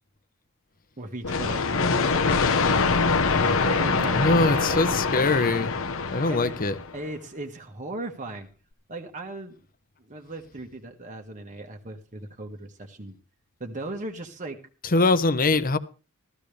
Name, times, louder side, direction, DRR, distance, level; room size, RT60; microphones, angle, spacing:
voice 1, 1.0-2.6 3.3-4.9 6.2-6.6 6.9-8.5 8.9-9.6 10.0-13.2 13.6-14.6, right 2 dB, 35° right, 1.5 m, -37 dB
sound 1, 1.2-7.0, left 4 dB, 65° left, 1.1 m, -24 dB
voice 2, 4.1-5.7 6.1-6.7 14.9-15.8, left 3 dB, 40° left, 1.1 m, -22 dB
15.5 x 14.0 x 3.4 m
head